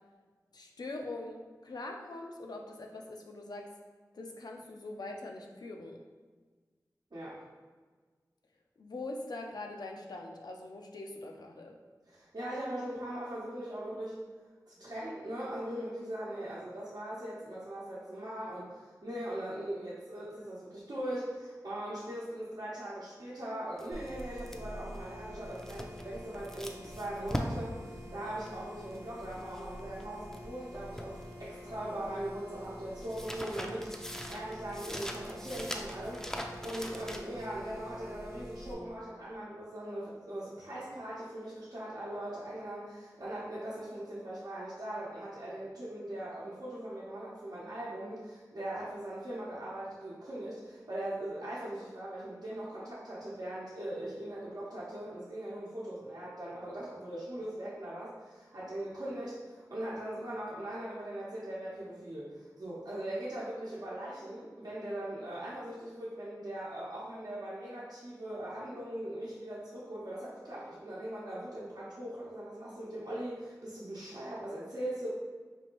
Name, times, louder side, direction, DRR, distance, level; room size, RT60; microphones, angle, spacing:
voice 1, 0.5-3.7 4.1-6.0 8.8-11.8, left 2 dB, 80° left, 2 dB, 0.4 m, -43 dB
voice 2, 7.1-7.4 12.1-14.2 14.7-75.1, right 1 dB, 75° right, -9 dB, 0.8 m, -40 dB
sound 1, 23.8-30.5 30.7-37.4, equal, 5° left, 0.4 m, -41 dB
sound 2, 23.9-38.7, equal, 45° right, 0.7 m, -47 dB
4.4 x 2.5 x 3.0 m, 1.4 s
wide cardioid pair, 50°, 7 cm